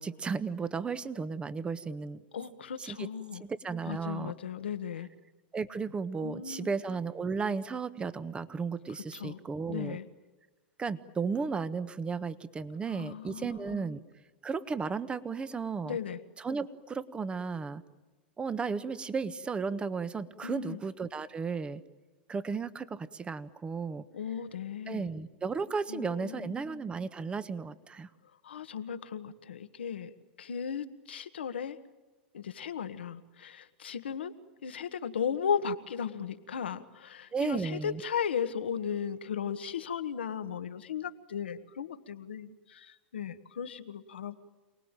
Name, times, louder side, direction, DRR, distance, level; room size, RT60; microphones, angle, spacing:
voice 1, 0.0-2.2 2.8-3.1 3.6-4.3 5.5-10.0 10.8-14.0 14.4-16.0 16.4-17.8 18.4-21.8 22.3-24.0 24.9-28.1 37.3-38.0, right 5 dB, 20° right, 14 dB, 1.3 m, -34 dB
voice 2, 2.3-3.4 3.9-5.1 6.2-6.7 9.1-9.4 9.7-10.1 12.9-13.9 15.8-16.2 20.4-20.8 24.1-25.0 25.9-26.6 28.4-30.1 30.4-31.8 32.3-34.3 34.6-44.4, left 7 dB, 90° left, 10 dB, 1.6 m, -36 dB
28.0 x 19.5 x 9.1 m, 1.3 s
hypercardioid pair, 110°, 6 cm